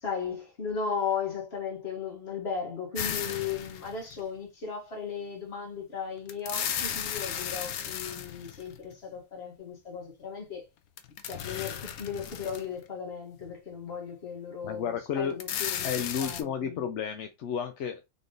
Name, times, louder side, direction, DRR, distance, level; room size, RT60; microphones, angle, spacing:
voice 1, 0.0-10.7 11.2-15.9 16.2-16.9, left 6 dB, 45° left, 1.9 m, -36 dB
sound 1, 2.9-4.2 6.3-8.9 11.0-12.8 13.4-13.5 15.3-16.4, left 9 dB, 85° left, 1.1 m, -35 dB
voice 2, 14.6-15.4 15.8-18.1, left 7 dB, 60° left, 0.8 m, -32 dB
4.0 x 3.3 x 3.8 m
omnidirectional pair, 1.5 m